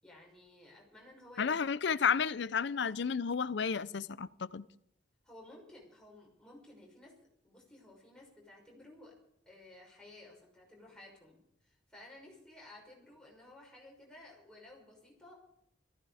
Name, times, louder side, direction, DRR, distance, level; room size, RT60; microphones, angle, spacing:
voice 1, 0.0-1.6 5.2-7.1 7.4-9.1 9.5-15.3, left 2 dB, 5° left, 5.9 m, -55 dB
voice 2, 1.4-4.7, left 6 dB, 70° left, 0.6 m, -32 dB
18.0 x 15.0 x 4.9 m
head